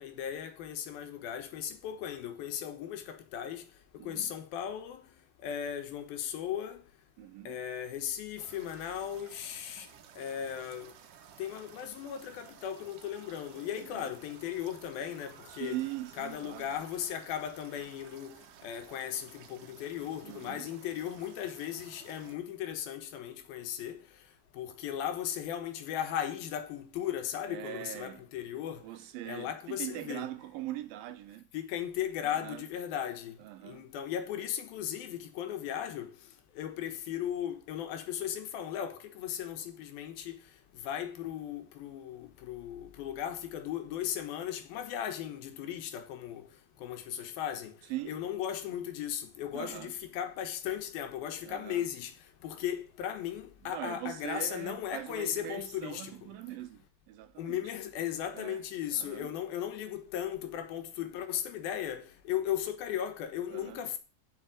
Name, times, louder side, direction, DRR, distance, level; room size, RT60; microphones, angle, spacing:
voice 1, 0.0-3.6 4.0-5.0 5.4-6.8 7.5-9.9 10.2-10.9 11.4-15.8 16.2-24.0 24.5-28.8 29.3-30.3 31.5-33.4 33.6-36.1 36.6-40.4 40.7-46.5 46.8-47.7 48.1-52.1 52.4-56.1 57.4-64.0, left 10 dB, 85° left, 3.0 m, -37 dB
voice 2, 4.0-4.3 7.2-7.6 13.7-14.0 15.5-16.7 20.2-20.7 27.5-28.2 28.8-31.5 32.2-32.6 33.4-33.9 47.9-48.2 49.5-49.9 51.4-51.8 53.6-57.6 58.3-58.6 58.9-59.3 63.5-63.8, right 15 dB, 85° right, 2.6 m, -41 dB
sound 1, 8.4-22.4, right 9 dB, 70° right, 2.3 m, -55 dB
7.2 x 5.9 x 7.6 m
omnidirectional pair, 4.1 m